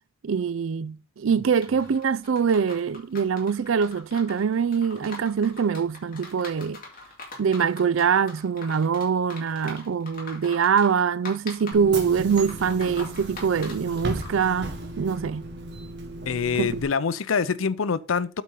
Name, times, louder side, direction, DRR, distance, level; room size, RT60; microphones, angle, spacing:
voice 1, 0.2-6.8 7.4-15.4 16.6-16.7, right 6 dB, 75° right, 0.4 m, -24 dB
sound 1, 1.6-14.4, left 3 dB, 45° left, 2.5 m, -43 dB
Bus / Engine, 11.7-16.8, right 1 dB, 55° right, 1.6 m, -35 dB
voice 2, 16.3-18.4, left 5 dB, 80° left, 0.6 m, -25 dB
8.4 x 4.2 x 5.4 m
head